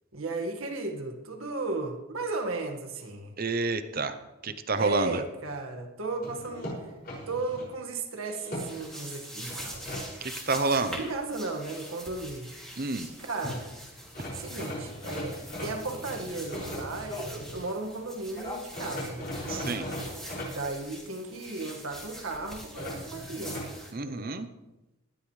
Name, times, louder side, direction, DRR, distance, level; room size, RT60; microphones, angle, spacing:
voice 1, 0.1-3.4 4.5-6.9 7.3-9.9 10.9-12.5 13.2-13.7 14.4-19.4 20.5-24.5, right 2 dB, 80° right, 3 dB, 1.8 m, -35 dB
voice 2, 3.4-4.2 4.4-5.2 10.2-11.0 12.8-13.1 14.2-14.3 19.5-19.9 23.9-24.5, right 3 dB, 45° right, 10 dB, 0.7 m, -29 dB
sound 1, 6.2-7.7 8.2-9.0 9.5-10.0 13.1-13.2 13.4-13.6 14.1-17.6 18.7-20.5 22.7-23.7, left 1 dB, 45° left, 6.2 m, -38 dB
sound 2, 8.6-23.9, equal, ahead, 2.6 m, -44 dB
sound 3, 13.1-18.6, left 2 dB, 20° left, 1.6 m, -47 dB
19.0 x 12.0 x 3.3 m, 1.0 s
head